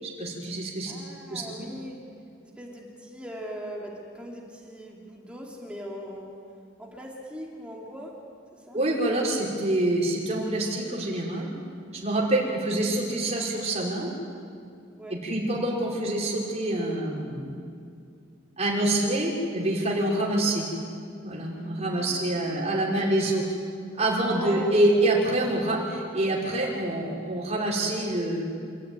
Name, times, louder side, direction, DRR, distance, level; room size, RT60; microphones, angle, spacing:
voice 1, 0.0-0.9 1.3-1.4 8.7-11.5 11.9-14.1 15.1-17.6 18.6-20.6 21.2-23.5 24.0-28.4, right 1 dB, 35° right, -3 dB, 5.3 m, -26 dB
voice 2, 0.9-2.0 2.4-6.3 6.8-8.1 8.5-8.8 15.0-15.2 21.9-23.1 24.3-25.1, equal, 5° right, -2 dB, 2.8 m, -40 dB
27.5 x 14.5 x 9.7 m, 2.4 s
head